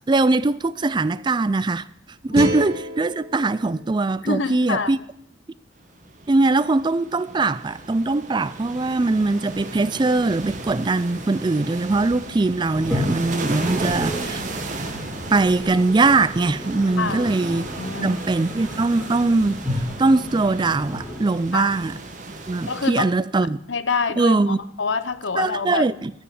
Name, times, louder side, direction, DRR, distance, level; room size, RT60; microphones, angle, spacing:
voice 1, 0.1-1.9 2.2-5.0 6.3-14.4 15.3-17.7 18.0-21.9 22.5-23.6 24.2-24.6 25.4-26.1, right 3 dB, 25° right, 0.4 m, -21 dB
sound 1, 2.3-5.4, equal, 60° right, 2.0 m, -32 dB
voice 2, 4.2-4.9 17.0-17.3 17.8-18.2 21.5-21.7 22.7-23.1 23.7-25.8, left 4 dB, 85° left, 0.9 m, -26 dB
sound 2, 6.0-22.9, right 2 dB, 40° right, 1.7 m, -35 dB
Toilet flush, 12.7-21.8, left 1 dB, 5° right, 2.8 m, -33 dB
14.0 x 6.1 x 9.5 m
head